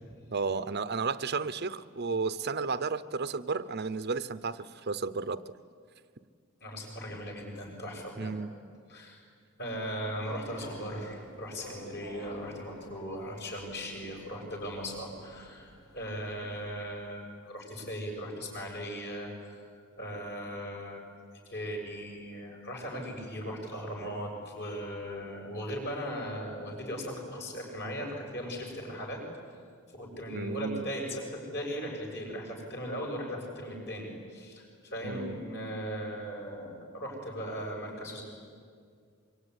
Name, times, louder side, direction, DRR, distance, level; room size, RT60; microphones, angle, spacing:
voice 1, 0.3-5.5 8.2-8.5 30.3-30.9 35.0-35.4, right 4 dB, 50° right, 13 dB, 0.7 m, -33 dB
voice 2, 6.6-8.4 8.9-9.2 9.6-21.0 21.5-29.2 29.9-38.2, equal, 50° left, 1 dB, 7.5 m, -38 dB
sound 1, 10.1-16.7, equal, 85° left, 6.1 m, -50 dB
24.5 x 24.0 x 10.0 m, 2.2 s
head